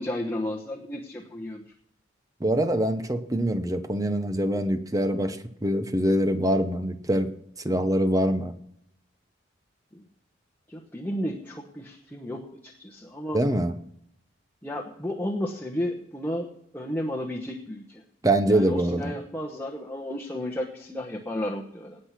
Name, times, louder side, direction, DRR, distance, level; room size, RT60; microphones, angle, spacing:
voice 1, 0.0-1.7 9.9-10.0 10.7-13.4 14.6-18.0 18.5-22.0, left 1 dB, 10° left, -2 dB, 1.1 m, -33 dB
voice 2, 2.4-7.3 7.6-8.5 13.3-13.7 18.2-19.1, right 1 dB, 20° right, 9 dB, 0.9 m, -24 dB
18.5 x 6.5 x 5.9 m, 0.74 s
head